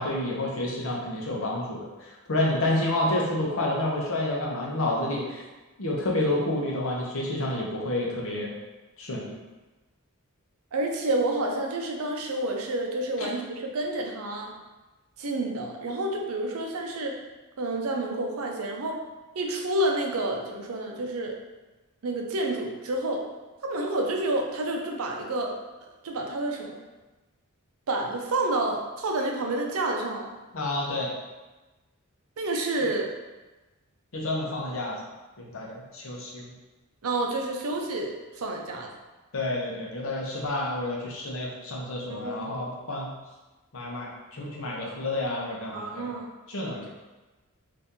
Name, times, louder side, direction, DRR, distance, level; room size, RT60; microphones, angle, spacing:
voice 1, 0.0-5.4 5.8-8.5 9.0-9.3 13.2-13.3 30.5-31.1 34.1-35.0 35.4-36.4 39.3-43.1 43.7-46.1 46.5-46.9, left 1 dB, 65° left, -3 dB, 0.8 m, -29 dB
voice 2, 10.7-14.5 15.2-17.2 17.6-19.0 19.3-21.3 22.0-23.2 23.6-25.5 26.0-26.8 27.9-30.4 32.4-33.1 37.0-38.9 42.1-42.6 45.7-46.3, right 2 dB, 70° right, 1 dB, 0.5 m, -29 dB
2.8 x 2.6 x 3.6 m, 1.1 s
head